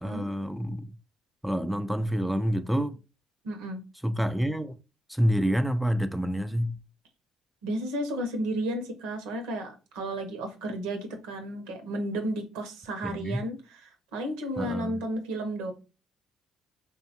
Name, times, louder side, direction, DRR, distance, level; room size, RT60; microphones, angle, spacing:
voice 1, 0.0-0.9 1.4-3.0 4.0-4.7 5.1-6.8 13.0-13.4 14.6-15.0, equal, 5° right, 0.3 m, -28 dB
voice 2, 3.4-3.8 7.6-15.7, right 1 dB, 85° right, 0.7 m, -33 dB
3.5 x 2.2 x 2.8 m
supercardioid pair, 65°, 0 cm